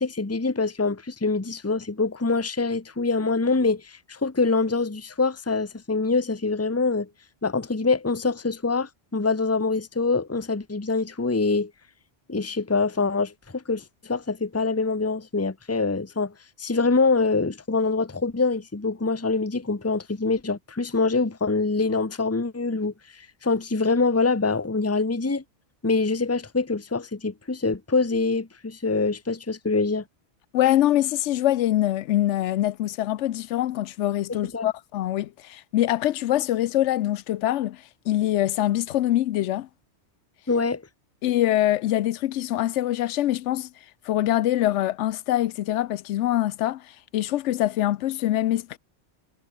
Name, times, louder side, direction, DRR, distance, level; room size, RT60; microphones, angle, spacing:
voice 1, 0.0-7.1 7.4-11.7 12.3-16.3 16.6-22.9 23.4-25.4 25.8-30.0 34.5-34.7 40.5-40.8, left 3 dB, 15° left, 1.0 m, -25 dB
voice 2, 30.5-39.7 41.2-43.7 44.0-48.8, left 13 dB, 85° left, 0.9 m, -24 dB
omnidirectional pair, 1.2 m